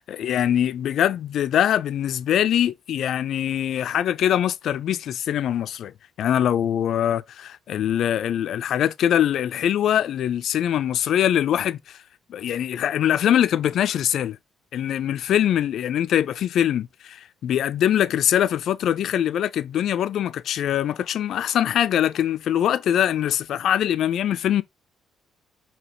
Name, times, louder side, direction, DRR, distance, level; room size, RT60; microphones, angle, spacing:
voice 1, 0.1-5.9 6.2-12.0 12.3-14.4 14.7-24.6, left 10 dB, 70° left, 0.4 m, -23 dB
5.0 x 2.8 x 2.9 m
cardioid pair, 80°, 0 cm